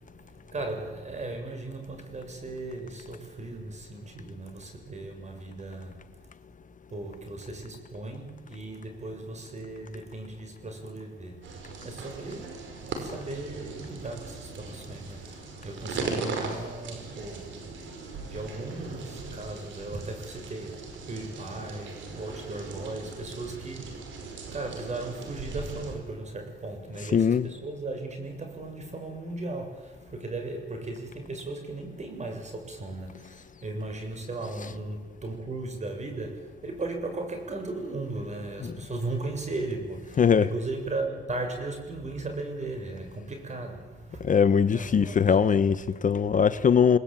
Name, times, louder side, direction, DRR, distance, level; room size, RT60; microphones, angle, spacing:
voice 1, 0.2-6.1 6.9-11.5 11.8-17.5 18.2-24.0 24.5-44.4 44.7-45.8, right 2 dB, 35° right, 7.1 m, -37 dB
sound 1, 11.4-26.0, right 4 dB, 75° right, 5.5 m, -39 dB
voice 2, 27.1-27.5 40.2-40.4 44.2-47.0, left 7 dB, 40° left, 0.9 m, -21 dB
29.0 x 19.5 x 9.0 m
cardioid pair, 90°, 20 cm